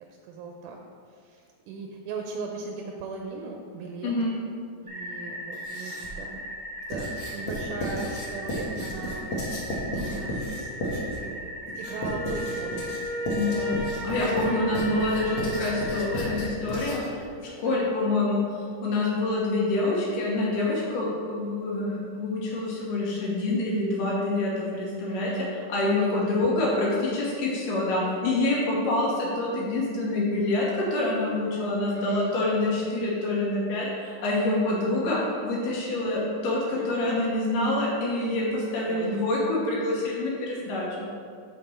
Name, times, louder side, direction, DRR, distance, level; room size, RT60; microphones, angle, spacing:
voice 1, 0.1-0.8 1.1-4.3 4.8-6.5 6.9-10.7 11.2-11.4 11.8-13.0 13.9-14.8 17.7-17.8 25.1-25.5 26.0-26.4 26.6-26.8 31.9-32.4 36.8-37.0 38.9-39.3, right 4 dB, 80° right, 1 dB, 2.0 m, -38 dB
sound 1, 4.9-16.5, equal, 55° right, 0.7 m, -38 dB
Writing, 5.5-6.3 6.9-17.2, equal, 60° left, 1.3 m, -33 dB
Wind instrument woodwind instrument, 11.8-16.5, equal, 35° left, 2.1 m, -34 dB
voice 2, 13.3-13.7 14.0-25.3 25.7-41.1, left 2 dB, 80° left, -5 dB, 2.6 m, -26 dB
6.6 x 5.6 x 4.3 m, 2.3 s
omnidirectional pair, 3.8 m